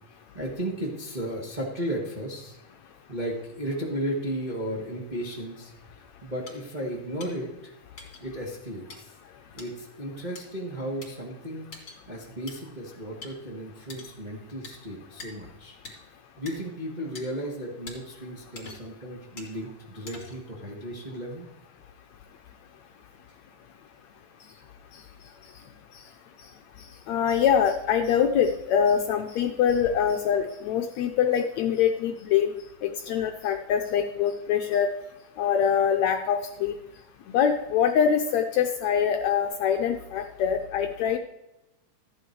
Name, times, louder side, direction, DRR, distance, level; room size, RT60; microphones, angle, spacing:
voice 1, 0.3-2.6 3.1-5.7 6.2-7.7 8.2-9.1 9.5-15.8 16.4-21.5, equal, 20° right, -3 dB, 1.3 m, -34 dB
sound 1, 6.5-6.6 7.2-7.3 8.0-8.2 8.9-9.0 9.6-9.7 10.3-10.4 11.0-11.1 11.7-12.0 12.5-12.6 13.2-13.3 13.9-14.2 14.6-14.8 15.2-15.3 15.8-16.0 16.5-16.6 17.1-17.2 17.9-18.0 18.5-18.9 19.4-19.5 20.1-20.5, left 3 dB, 35° left, 3.2 m, -43 dB
voice 2, 27.1-32.5 32.8-34.9 35.4-36.7 37.3-41.2, left 8 dB, 75° left, 4 dB, 1.7 m, -24 dB
14.0 x 8.7 x 4.7 m, 0.94 s
omnidirectional pair, 3.7 m